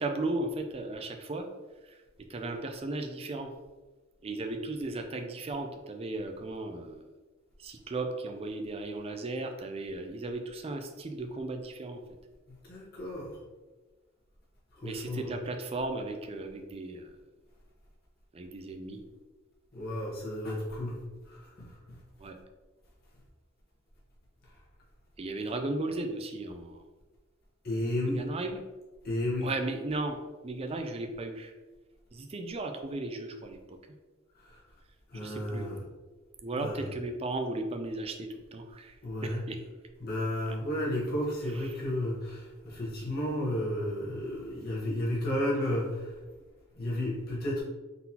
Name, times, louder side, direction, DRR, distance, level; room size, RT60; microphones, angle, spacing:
voice 1, 0.0-1.5 2.3-3.5 4.2-7.1 7.6-12.0 14.8-17.1 18.3-19.0 22.2-22.4 25.2-26.8 28.0-28.6 29.4-30.2 30.4-31.5 32.1-33.8 35.1-35.7 36.4-39.0 39.2-39.6 41.5-41.8, right 2 dB, 30° right, 5 dB, 0.4 m, -35 dB
voice 2, 12.6-13.4 14.8-15.3 19.7-21.0 21.3-22.0 27.6-28.2 29.0-29.5 34.5-34.6 35.1-35.8 36.5-37.0 39.0-39.5 40.0-46.1 46.8-47.6, left 1 dB, 50° left, -6 dB, 1.0 m, -32 dB
3.9 x 3.8 x 2.8 m, 1.3 s
head